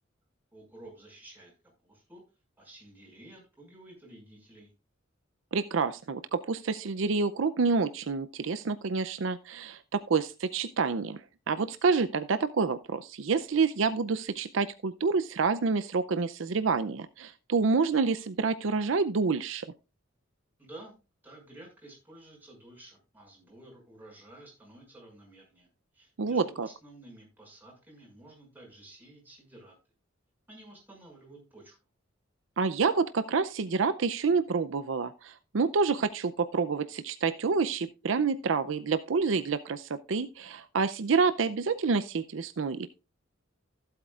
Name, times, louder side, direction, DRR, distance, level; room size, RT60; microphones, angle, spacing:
voice 1, 0.5-1.5 1.8-2.2 2.6-4.7 20.6-21.0 21.2-25.7 25.9-29.8 30.5-31.8, right 1 dB, 10° right, 5.9 m, -52 dB
voice 2, 5.5-19.7 26.2-26.7 32.6-42.9, right 4 dB, 70° right, 0.5 m, -28 dB
15.5 x 8.1 x 2.4 m
head